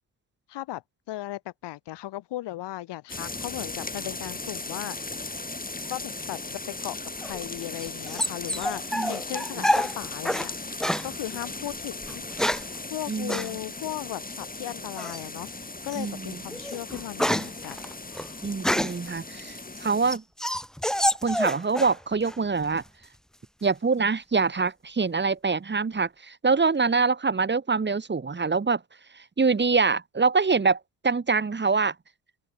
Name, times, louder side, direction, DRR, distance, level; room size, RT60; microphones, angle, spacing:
voice 1, 0.5-0.8 1.1-5.2 5.9-10.5 11.0-12.5 12.9-17.8, left 15 dB, 65° left, 4.4 m, -37 dB
sound 1, 3.1-20.2, left 3 dB, 20° left, 6.5 m, -37 dB
sound 2, 7.2-10.5 10.8-11.1 12.0-12.8 13.3-13.5 15.0-15.4 15.9-16.1 16.5-19.1 19.6-22.0 22.2-22.9, equal, ahead, 0.9 m, -28 dB
voice 2, 13.1-13.5 15.9-16.4 18.4-20.2 21.2-22.8 23.6-28.8 29.1-31.9, right 4 dB, 25° right, 1.8 m, -25 dB
open air
hypercardioid pair, 45°, 45 cm